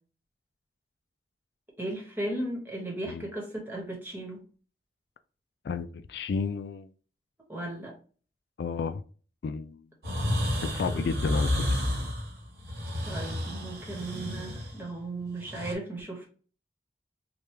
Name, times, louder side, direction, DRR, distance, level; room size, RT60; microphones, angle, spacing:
voice 1, 1.8-4.4 7.5-8.0 10.8-11.1 13.0-16.3, right 1 dB, 10° right, 1.2 m, -36 dB
voice 2, 5.6-6.9 8.6-9.0 9.4-9.8 10.6-11.8, left 5 dB, 70° left, 0.3 m, -32 dB
sound 1, 10.0-15.7, left 1 dB, 65° right, 1.3 m, -31 dB
4.8 x 2.3 x 3.2 m
head